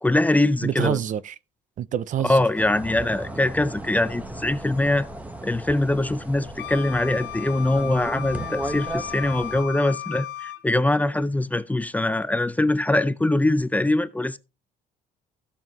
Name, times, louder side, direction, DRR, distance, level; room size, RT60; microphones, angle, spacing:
voice 1, 0.0-1.0 2.2-5.1 5.4-14.4, left 2 dB, 10° left, 0.5 m, -23 dB
voice 2, 0.6-1.3 1.8-2.4, right 11 dB, 50° right, 0.5 m, -26 dB
sound 1, 2.6-9.6, right 1 dB, 10° right, 1.2 m, -36 dB
Wind instrument woodwind instrument, 6.6-10.7, left 13 dB, 75° left, 0.8 m, -35 dB
15.5 x 6.9 x 3.0 m
cardioid pair, 110°, 17 cm